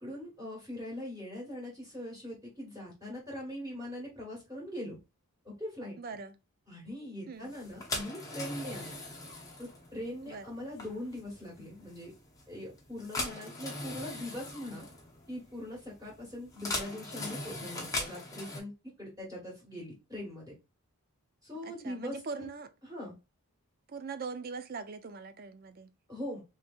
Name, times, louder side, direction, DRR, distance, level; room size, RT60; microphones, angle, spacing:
voice 1, 0.0-5.0 5.6-6.0 6.7-8.9 9.6-12.1 12.5-14.8 15.3-20.5 21.4-22.2 22.8-23.1 26.1-26.4, left 1 dB, 15° right, 1.5 m, -41 dB
voice 2, 6.0-6.3 7.3-7.5 10.3-10.5 21.6-22.7 23.9-25.9, right 4 dB, 40° right, 0.4 m, -41 dB
sound 1, 7.5-18.6, left 2 dB, 15° left, 0.8 m, -40 dB
3.4 x 3.1 x 2.4 m
head